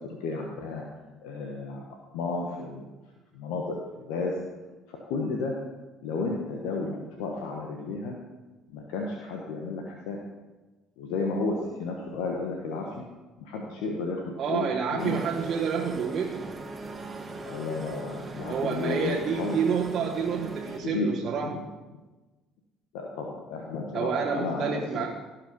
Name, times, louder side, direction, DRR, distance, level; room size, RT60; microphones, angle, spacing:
voice 1, 0.2-0.8 1.2-1.8 2.1-2.9 3.3-4.3 4.9-5.5 6.0-8.1 8.7-10.2 11.0-12.9 13.4-14.2 14.5-14.7 14.9-15.2 17.4-19.6 20.8-21.1 22.9-25.1, left 3 dB, 70° left, 0 dB, 1.3 m, -32 dB
voice 2, 14.4-16.5 18.5-21.6 23.9-25.1, right 6 dB, 50° right, -2 dB, 1.4 m, -29 dB
sound 1, 15.0-20.8, right 3 dB, 30° right, 1.6 m, -40 dB
17.0 x 5.8 x 5.4 m, 1.2 s
hypercardioid pair, 55°, 0 cm